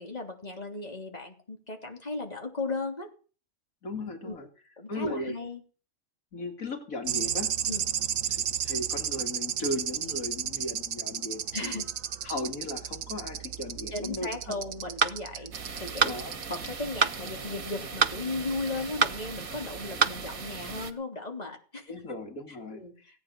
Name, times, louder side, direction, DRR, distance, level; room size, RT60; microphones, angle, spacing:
voice 1, 0.0-3.1 4.2-4.4 4.8-5.6 7.7-7.8 11.5-11.8 13.9-15.5 15.8-16.2 16.5-22.2 22.5-22.9, left 3 dB, 30° left, 3 dB, 3.5 m, -36 dB
voice 2, 3.8-4.5 4.9-5.3 6.3-7.5 8.3-11.8 12.2-14.6 16.0-16.4 18.8-18.9 21.9-23.2, left 1 dB, 80° left, 6 dB, 2.7 m, -37 dB
sound 1, 7.0-16.7 17.0-17.3 18.7-18.8, right 9 dB, 70° right, 1.3 m, -33 dB
sound 2, 15.0-15.2 16.0-16.2 17.0-17.2 18.0-18.2 19.0-19.2 20.0-20.2, right 5 dB, 45° right, 1.2 m, -23 dB
sound 3, 15.5-20.9, right 5 dB, 90° right, 2.2 m, -40 dB
17.5 x 9.5 x 6.2 m, 0.38 s
omnidirectional pair, 1.4 m